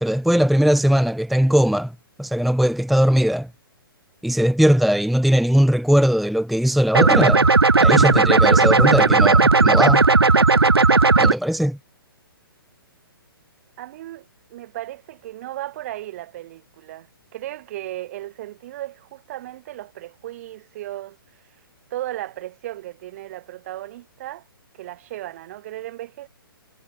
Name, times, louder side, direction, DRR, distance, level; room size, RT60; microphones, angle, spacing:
voice 1, 0.0-1.9 2.2-3.5 4.2-7.5 7.8-10.1 11.2-11.8, equal, ahead, 0.8 m, -19 dB
sound 1, 6.9-11.3, right 3 dB, 85° right, 0.4 m, -15 dB
voice 2, 13.8-17.1 17.3-21.2 21.9-24.4 24.8-26.3, right 15 dB, 40° right, 5.1 m, -35 dB
figure-of-eight pair, 125°, 13 cm